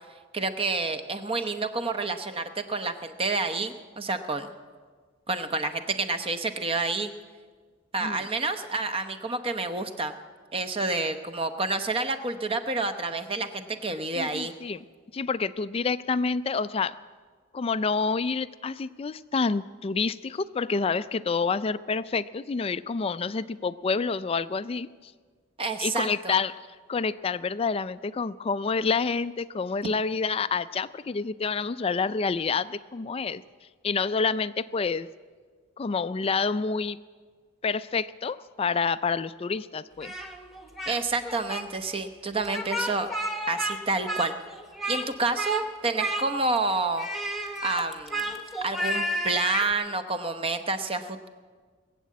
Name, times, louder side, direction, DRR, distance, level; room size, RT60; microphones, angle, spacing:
voice 1, 0.3-4.5 5.3-7.1 7.9-10.1 10.5-14.5 25.6-26.3 40.9-43.1 43.5-44.3 44.9-47.1 47.6-48.3 48.6-51.3, right 3 dB, 25° right, 9 dB, 0.8 m, -29 dB
voice 2, 14.1-14.8 15.1-17.0 17.5-25.1 25.8-26.6 26.9-33.4 33.8-35.1 35.8-37.0 37.6-40.1, left 4 dB, 30° left, 15 dB, 0.3 m, -28 dB
Speech, 40.0-41.0 41.2-41.6 42.4-43.8 44.0-45.1 45.4-45.6 46.0-46.6 47.0-49.7, equal, ahead, 1.2 m, -31 dB
21.0 x 7.6 x 8.3 m, 1.5 s
head